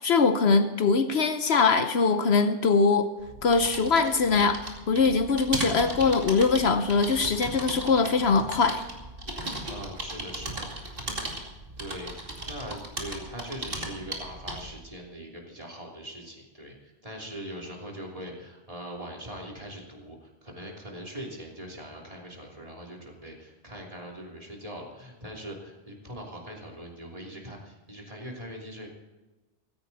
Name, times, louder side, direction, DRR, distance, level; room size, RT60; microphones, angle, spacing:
voice 1, 0.0-3.1 3.4-8.8, left 4 dB, 65° left, 9 dB, 1.0 m, -22 dB
sound 1, 3.2-14.8, right 1 dB, 50° right, 2.7 m, -37 dB
voice 2, 9.7-11.1 11.8-28.9, equal, 30° right, -1 dB, 3.2 m, -41 dB
16.0 x 14.5 x 4.2 m, 1.2 s
omnidirectional pair, 1.2 m